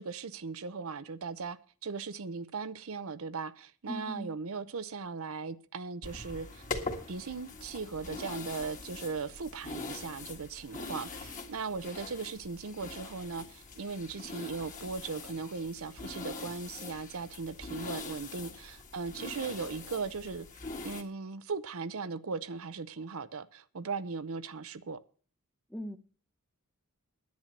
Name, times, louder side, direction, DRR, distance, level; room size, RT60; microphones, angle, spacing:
voice 1, 0.0-6.6 7.1-20.5 20.8-25.0, right 4 dB, 70° right, 0.7 m, -38 dB
voice 2, 3.9-4.3 25.7-26.0, equal, 5° left, 0.8 m, -39 dB
sound 1, 6.0-21.0, left 3 dB, 35° left, 1.7 m, -43 dB
10.5 x 9.0 x 6.5 m
head